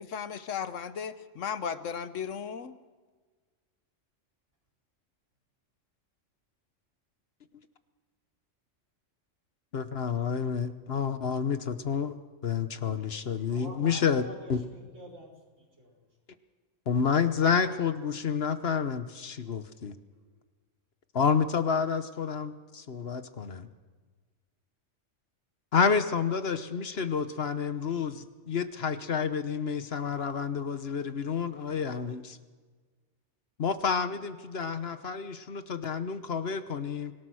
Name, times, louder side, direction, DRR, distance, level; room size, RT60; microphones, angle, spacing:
voice 1, 0.0-2.8, left 7 dB, 80° left, 12 dB, 1.3 m, -35 dB
voice 2, 9.7-11.6 11.9-12.1 12.4-14.6 16.9-20.0 21.1-23.7 25.7-32.4 33.6-37.1, left 6 dB, 55° left, 11 dB, 1.2 m, -29 dB
voice 3, 13.5-16.1, equal, 80° right, -1 dB, 5.4 m, -47 dB
25.0 x 17.5 x 6.3 m, 1.4 s
omnidirectional pair, 1.3 m